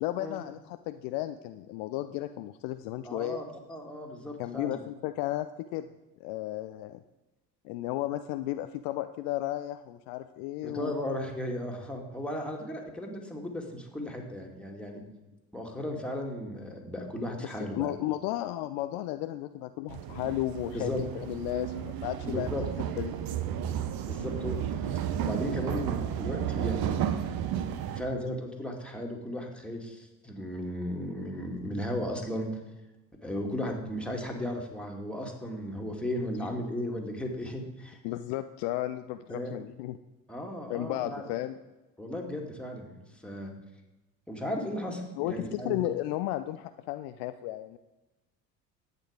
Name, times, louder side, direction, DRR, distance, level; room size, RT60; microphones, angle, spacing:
voice 1, 0.0-3.4 4.4-5.9 6.2-7.0 7.6-10.9 17.4-22.5 23.0-23.1 38.0-40.0 40.7-41.6 45.2-47.8, left 14 dB, 55° left, 10 dB, 0.6 m, -34 dB
voice 2, 3.0-4.8 10.6-15.0 15.5-17.9 20.7-21.0 22.2-22.6 24.1-27.0 28.0-32.5 33.2-38.0 39.3-39.5 40.3-41.2 42.0-43.5 44.3-45.8, left 1 dB, ahead, 1 dB, 2.2 m, -35 dB
sound 1, 19.9-28.0, right 10 dB, 50° right, 0.9 m, -33 dB
11.0 x 8.3 x 5.0 m, 1.1 s
figure-of-eight pair, 60°, 48 cm